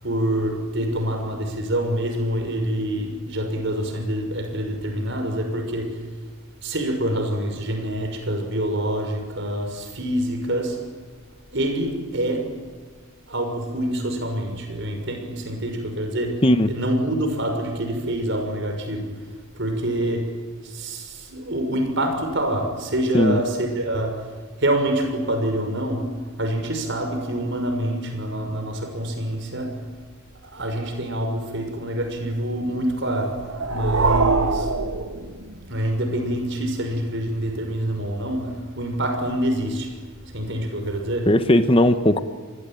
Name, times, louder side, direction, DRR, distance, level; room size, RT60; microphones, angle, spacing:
voice 1, 0.0-6.1 6.6-10.9 11.5-12.6 13.3-24.3 24.6-29.9 30.4-34.7 35.7-41.3, right 1 dB, 55° right, 6.0 m, -26 dB
sound 1, 33.3-35.8, right 3 dB, 75° right, 2.0 m, -24 dB
voice 2, 41.3-42.2, left 1 dB, 25° left, 1.1 m, -17 dB
28.5 x 21.0 x 9.1 m
head